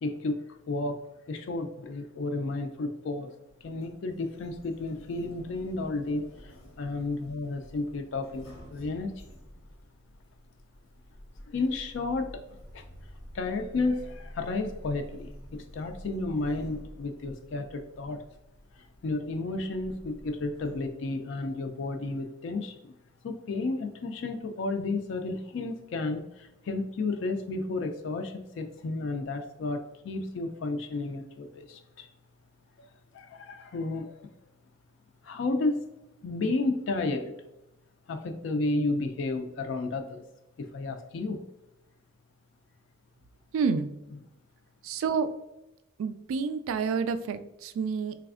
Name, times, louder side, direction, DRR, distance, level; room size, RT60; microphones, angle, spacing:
voice 1, 0.0-0.4 0.7-1.0 1.3-3.3 3.6-9.3 11.5-12.4 12.7-12.8 13.3-18.2 18.7-22.9 23.2-32.1 33.1-34.3 35.2-35.8 36.2-37.3 38.1-40.2 40.6-41.4, left 3 dB, 65° left, 6 dB, 0.3 m, -32 dB
Sliding door, 3.5-20.9, equal, 85° left, 0.9 m, -49 dB
voice 2, 43.5-43.9 44.8-45.3 46.0-48.1, right 5 dB, 85° right, 11 dB, 0.3 m, -29 dB
4.0 x 3.3 x 2.4 m, 0.94 s
head